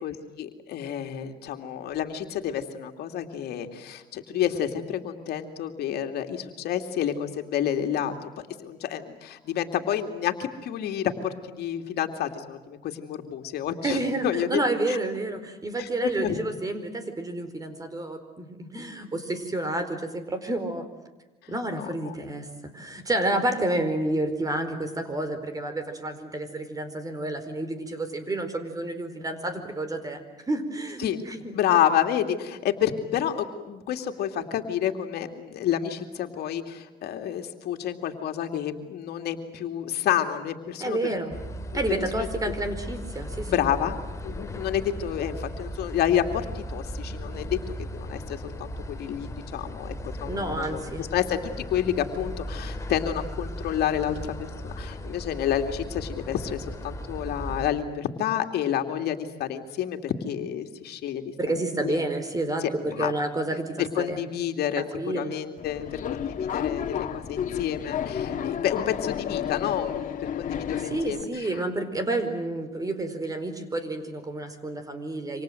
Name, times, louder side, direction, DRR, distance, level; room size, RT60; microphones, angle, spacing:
voice 1, 0.0-14.6 14.9-15.0 15.8-16.4 21.8-22.1 31.0-31.2 31.5-41.0 42.0-42.3 43.5-47.6 47.9-51.4 51.7-61.3 61.8-62.0 62.6-63.1 63.8-64.8 65.1-71.3, left 10 dB, 70° left, 5 dB, 2.6 m, -29 dB
voice 2, 13.8-20.9 21.5-30.2 30.5-31.6 40.8-41.4 41.7-43.6 50.2-51.0 61.4-64.2 64.8-65.4 70.8-75.4, right 2 dB, 20° right, 10 dB, 4.7 m, -30 dB
sound 1, 41.3-57.7, equal, 20° left, 2.9 m, -37 dB
Subway metro underground, 65.6-71.2, left 8 dB, 50° left, 2.1 m, -31 dB
28.5 x 26.0 x 7.9 m, 1.1 s
cardioid pair, 110°, 17 cm